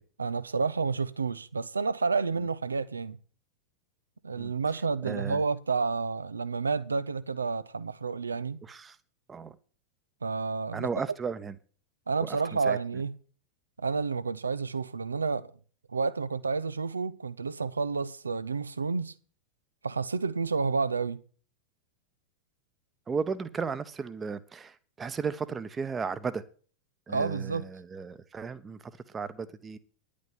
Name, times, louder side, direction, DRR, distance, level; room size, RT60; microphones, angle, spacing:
voice 1, 0.2-3.2 4.2-8.6 10.2-10.9 12.1-13.1 13.8-15.5 15.9-19.1 19.8-21.2 27.1-27.7, right 4 dB, 75° right, 0.7 m, -30 dB
voice 2, 5.0-5.4 8.6-9.0 9.3-9.5 10.7-11.5 12.3-12.8 23.1-26.4 27.1-29.8, right 5 dB, 20° right, 1.0 m, -35 dB
10.5 x 8.6 x 7.9 m
figure-of-eight pair, 90°, 0 cm